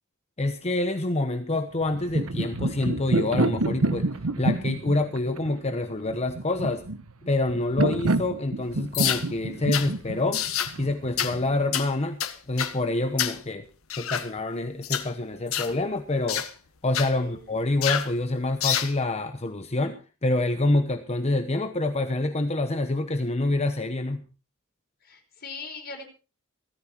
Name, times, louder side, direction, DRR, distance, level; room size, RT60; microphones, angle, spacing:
voice 1, 0.4-4.1 4.4-6.8 7.2-10.4 10.8-12.2 12.5-13.7 14.0-16.4 16.8-24.3, left 2 dB, 30° left, 7 dB, 1.0 m, -27 dB
sound 1, 1.8-11.5, right 2 dB, 80° right, 1.1 m, -28 dB
sound 2, 8.9-9.3 9.7-9.9 10.3-10.7 11.2-11.4 11.7-11.9 12.2-12.8 13.2-13.4 13.9-14.3 14.8-15.1 15.5-15.7 16.3-16.5 16.9-17.1 17.8-18.1 18.6-18.9, left 10 dB, 75° left, 1.7 m, -27 dB
voice 2, 17.1-17.4 25.0-26.0, left 4 dB, 45° left, 3 dB, 4.9 m, -40 dB
17.5 x 14.0 x 4.5 m, 0.35 s
head